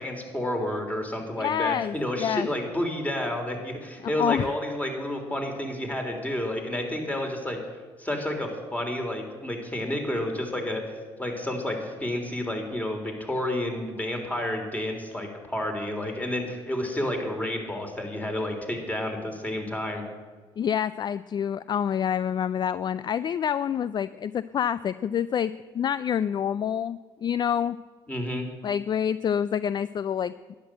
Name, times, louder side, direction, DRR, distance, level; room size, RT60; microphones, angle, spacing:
voice 1, 0.0-7.6 8.0-20.0 28.1-28.5, left 1 dB, 15° left, 3 dB, 3.5 m, -30 dB
voice 2, 1.4-2.5 4.0-4.4 20.6-27.8 28.6-30.3, left 8 dB, 45° left, 16 dB, 0.4 m, -27 dB
12.0 x 10.0 x 7.8 m, 1.4 s
supercardioid pair, 75°, 11 cm